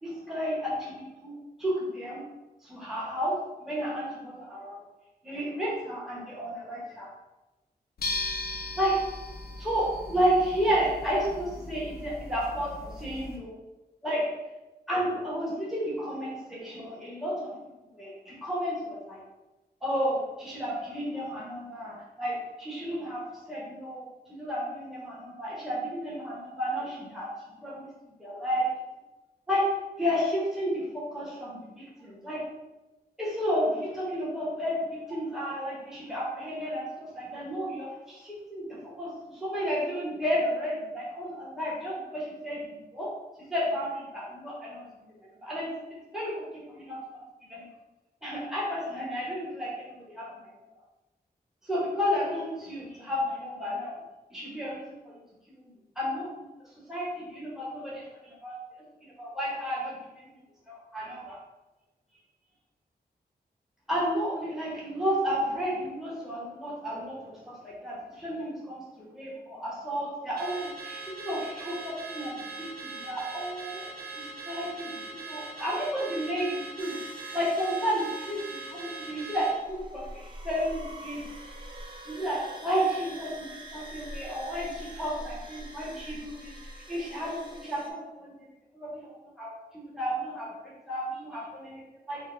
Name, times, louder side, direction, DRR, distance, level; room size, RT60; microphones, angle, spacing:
voice 1, 0.0-1.3 1.6-2.2 2.6-3.3 3.6-4.8 5.2-7.1 8.7-9.0 9.6-13.5 14.0-14.3 14.9-17.5 18.0-19.2 19.8-23.2 23.5-27.3 27.5-28.7 29.5-29.6 30.0-31.7 32.0-32.4 33.2-43.1 43.5-44.9 45.4-45.7 46.1-46.3 46.7-47.2 47.5-47.6 48.2-50.4 51.7-54.0 54.3-55.2 55.5-56.5 56.9-58.5 59.2-60.3 60.7-61.4 63.9-73.9 74.2-75.0 75.2-77.0 77.3-81.2 82.0-86.5 86.9-88.5 88.7-89.5 89.7-90.5 90.9-92.2, equal, 5° right, -6 dB, 1.2 m, -32 dB
sound 1, 8.0-13.4, left 2 dB, 70° left, 0.7 m, -38 dB
Car / Alarm, 70.4-79.6, right 3 dB, 70° right, 0.5 m, -41 dB
sound 2, 76.8-87.9, right 1 dB, 30° right, 0.7 m, -45 dB
4.6 x 2.3 x 3.3 m, 1.1 s
wide cardioid pair, 95°, 16 cm